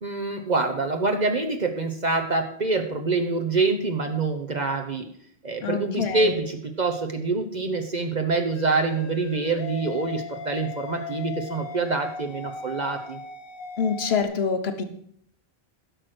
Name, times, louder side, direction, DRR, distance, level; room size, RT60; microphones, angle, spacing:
voice 1, 0.0-5.1 5.4-13.2, right 3 dB, 45° right, 5 dB, 1.0 m, -26 dB
voice 2, 5.6-6.4 13.8-14.8, left 6 dB, 80° left, 8 dB, 1.3 m, -26 dB
sound 1, 8.5-14.2, left 5 dB, 65° left, 1.0 m, -38 dB
11.5 x 6.4 x 6.1 m, 0.64 s
omnidirectional pair, 1.0 m